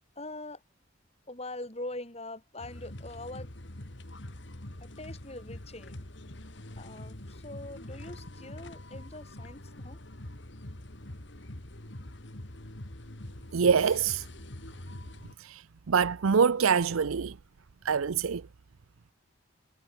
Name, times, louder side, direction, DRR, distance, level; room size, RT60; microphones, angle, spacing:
voice 1, 0.2-0.6 1.3-3.5 4.8-6.1 6.8-10.1, left 2 dB, 30° left, 3.7 m, -43 dB
sound 1, 2.6-15.3, left 1 dB, 60° left, 2.4 m, -44 dB
voice 2, 13.5-14.2 15.4-17.4 17.8-18.4, right 6 dB, 90° right, 0.6 m, -25 dB
head